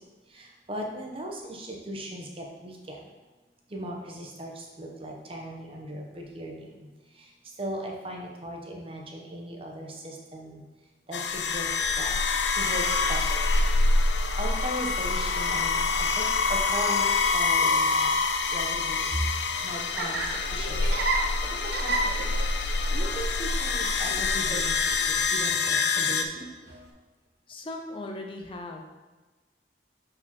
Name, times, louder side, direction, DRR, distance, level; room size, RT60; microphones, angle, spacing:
voice 1, 0.3-3.0 3.7-6.7 7.6-10.6 11.1-11.7 12.0-12.1 12.6-13.4 14.4-16.2 16.5-17.0 17.3-18.1 18.5-19.1 19.6-20.8 21.2-21.3 21.8-22.3 22.9-24.8 25.1-26.4, right 1 dB, 30° right, 0 dB, 1.0 m, -38 dB
sound 1, 11.1-26.2, left 3 dB, 80° left, 0.5 m, -26 dB
Laughter, 19.4-26.9, right 2 dB, 65° right, 0.9 m, -34 dB
voice 2, 27.5-28.8, left 2 dB, 30° left, 2 dB, 0.6 m, -38 dB
6.4 x 4.8 x 4.3 m, 1.2 s
head